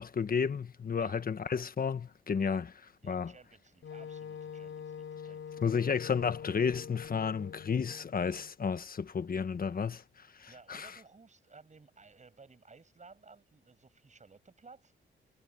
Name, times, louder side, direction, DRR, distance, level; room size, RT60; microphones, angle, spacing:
voice 1, 0.0-2.7 3.1-3.3 5.6-10.9, left 6 dB, 45° left, 1.4 m, -32 dB
voice 2, 3.0-5.8 10.5-15.0, right 4 dB, 35° right, 7.7 m, -57 dB
Wind instrument woodwind instrument, 3.8-8.5, left 7 dB, 70° left, 5.6 m, -45 dB
cardioid pair, 90°, 21 cm